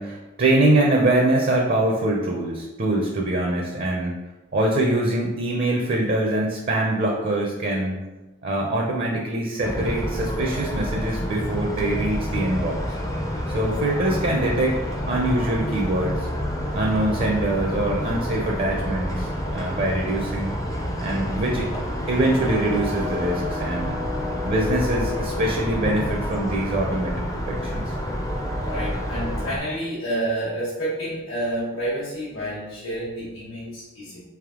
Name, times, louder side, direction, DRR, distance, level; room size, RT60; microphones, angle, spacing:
voice 1, 0.0-4.2 4.5-8.0 8.4-12.8 13.5-14.8 15.1-16.3 16.7-20.5 21.0-21.7 22.1-24.0 24.4-28.0, right 1 dB, 45° right, -1 dB, 0.5 m, -23 dB
sound 1, 9.6-29.6, equal, 15° left, 0.4 m, -28 dB
voice 2, 28.6-34.2, right 1 dB, 75° left, -8 dB, 1.2 m, -29 dB
3.4 x 3.1 x 3.6 m, 1.1 s
head